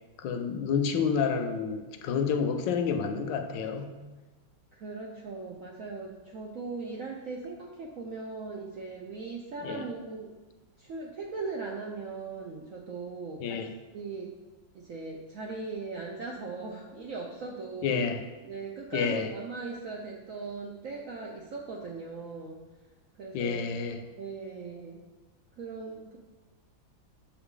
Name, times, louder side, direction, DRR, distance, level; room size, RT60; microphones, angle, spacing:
voice 1, 0.2-4.0 9.6-9.8 13.4-13.7 17.8-18.2 18.9-19.3 23.3-24.0, left 6 dB, 75° left, 6 dB, 1.2 m, -29 dB
voice 2, 4.7-10.3 10.8-13.6 13.9-14.3 14.7-18.0 18.4-22.6 23.2-23.6 24.1-25.0 25.6-26.2, right 4 dB, 70° right, -1 dB, 0.8 m, -39 dB
6.9 x 4.7 x 3.8 m, 1.2 s
omnidirectional pair, 2.1 m